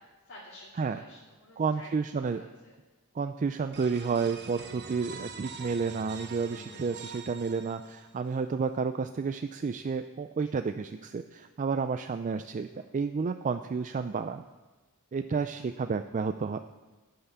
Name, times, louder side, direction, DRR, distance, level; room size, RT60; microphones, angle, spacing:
voice 1, 0.0-1.9 2.2-2.8 3.5-3.8 10.5-10.6 12.7-13.0 15.3-15.6, left 1 dB, 55° left, -7 dB, 2.5 m, -53 dB
voice 2, 1.6-2.4 3.1-14.4 15.1-16.6, right 5 dB, 35° right, 9 dB, 0.3 m, -31 dB
sound 1, 3.7-8.3, right 5 dB, 50° right, 1.0 m, -44 dB
12.0 x 5.7 x 8.2 m, 1.2 s
head